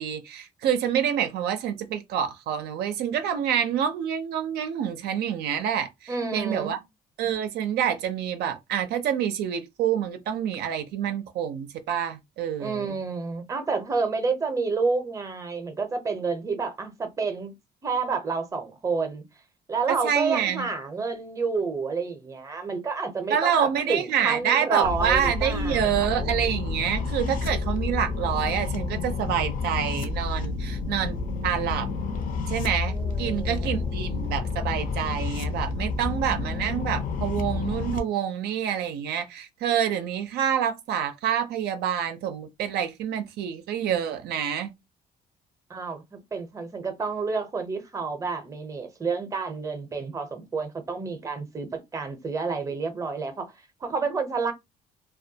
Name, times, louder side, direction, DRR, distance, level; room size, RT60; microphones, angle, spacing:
voice 1, 0.0-6.8 7.2-13.0 19.9-20.7 23.3-31.2 31.4-31.9 32.5-44.7, right 9 dB, 75° right, 0.4 m, -27 dB
voice 2, 6.1-6.8 12.6-17.5 17.8-19.2 19.7-26.3 32.9-33.9 45.7-53.5 53.8-54.5, right 4 dB, 20° right, 0.6 m, -29 dB
sound 1, 24.8-38.0, left 4 dB, 50° left, 0.6 m, -29 dB
2.2 x 2.1 x 2.7 m
cardioid pair, 110°, 17 cm